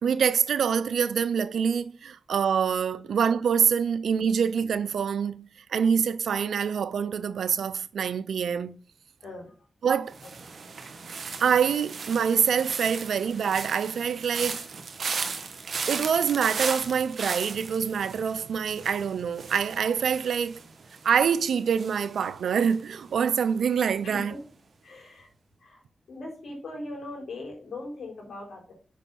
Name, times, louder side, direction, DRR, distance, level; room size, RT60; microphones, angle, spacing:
voice 1, 0.0-8.8 9.8-10.2 11.4-14.6 15.9-20.6 21.0-24.3, right 7 dB, 90° right, 0.5 m, -25 dB
voice 2, 9.2-9.5 24.0-24.4 24.8-25.3 25.6-25.8 26.1-28.7, left 2 dB, 80° left, 3.9 m, -40 dB
sound 1, 10.1-23.2 23.4-23.9, right 5 dB, 70° right, 1.2 m, -37 dB
6.7 x 5.4 x 5.3 m
cardioid pair, 50°, 0 cm